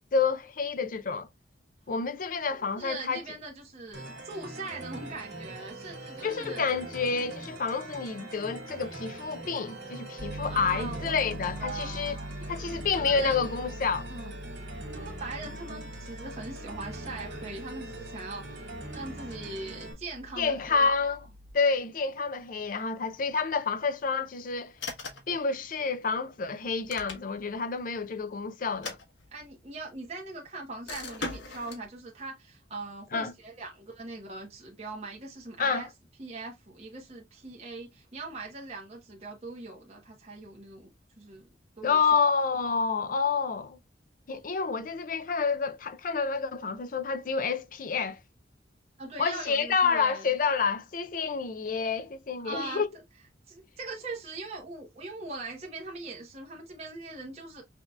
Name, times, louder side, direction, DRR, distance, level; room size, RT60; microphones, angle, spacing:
voice 1, 0.1-1.3 1.9-3.2 6.2-12.2 12.5-14.1 20.4-21.3 21.5-24.7 25.3-29.0 33.1-33.3 35.6-35.9 41.8-43.8 44.3-48.2 49.2-52.9, left 5 dB, 45° left, 0.5 m, -29 dB
voice 2, 2.8-6.7 10.5-13.5 14.1-14.3 14.9-18.6 18.9-21.1 29.3-35.9 36.2-40.9 41.2-41.5 41.8-42.2 49.0-50.3 52.4-52.8 53.5-57.6, right 3 dB, 35° right, 1.1 m, -41 dB
sound 1, 3.9-19.9, right 2 dB, 75° right, 1.9 m, -42 dB
Piano, 10.2-21.5, equal, 60° right, 1.2 m, -43 dB
sound 2, 24.8-25.4 26.7-27.6 28.7-29.6 30.9-31.9, left 3 dB, 80° left, 1.2 m, -39 dB
5.8 x 2.8 x 2.3 m
head